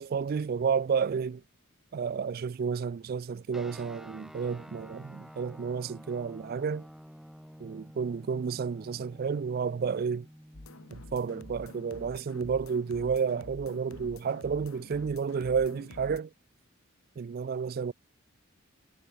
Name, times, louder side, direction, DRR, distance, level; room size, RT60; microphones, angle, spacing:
voice 1, 0.0-1.4 1.9-6.9 7.6-10.3 10.9-16.3 17.2-17.9, right 6 dB, 45° right, 0.3 m, -31 dB
sound 1, 3.5-14.7, equal, ahead, 1.9 m, -51 dB
sound 2, 10.5-16.2, left 2 dB, 75° left, 1.7 m, -48 dB
head